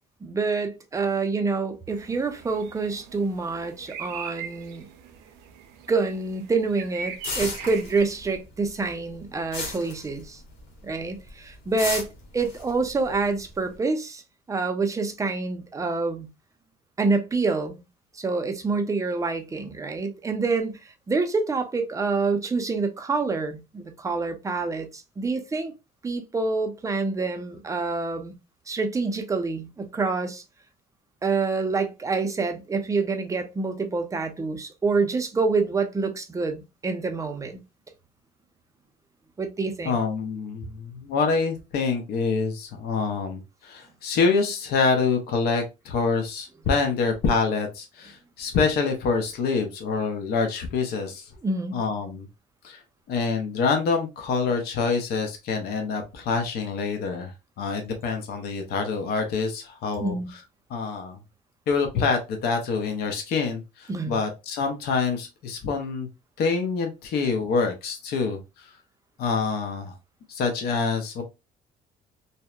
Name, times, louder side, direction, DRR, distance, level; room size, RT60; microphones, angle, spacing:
voice 1, 0.2-4.9 5.9-10.4 10.8-12.1 12.3-14.2 14.5-16.3 17.0-17.8 18.1-25.7 26.0-28.3 28.7-30.4 31.2-37.6 39.4-40.0 51.4-51.7 60.0-60.3 63.9-64.2, right 4 dB, 20° right, 0.5 m, -27 dB
sound 1, 1.9-8.4, right 7 dB, 80° right, 0.5 m, -41 dB
sound 2, 7.2-8.4 8.7-10.7 11.0-11.3 11.8-13.7, left 3 dB, 85° left, 1.0 m, -33 dB
voice 2, 39.9-51.3 51.7-52.3 52.6-52.8 53.1-60.2 60.7-61.2 61.7-66.1 66.4-68.7 69.2-69.9 70.3-71.2, left 4 dB, 70° left, 0.6 m, -26 dB
2.7 x 2.1 x 2.2 m
cardioid pair, 110°, 17 cm